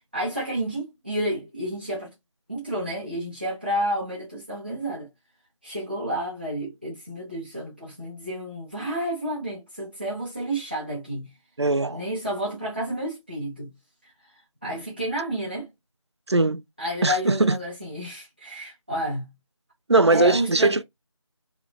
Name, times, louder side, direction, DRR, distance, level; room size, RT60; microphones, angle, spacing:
voice 1, 0.0-2.1 2.5-5.1 5.6-11.3 11.9-13.7 14.0-14.1 14.6-15.7 16.8-19.3 20.1-20.8, equal, 20° right, 0.9 m, -30 dB
voice 2, 11.6-12.0 16.3-16.6 17.0-17.6 19.9-20.8, right 2 dB, 55° right, 0.4 m, -20 dB
4.2 x 3.0 x 2.2 m
figure-of-eight pair, 170°, 17 cm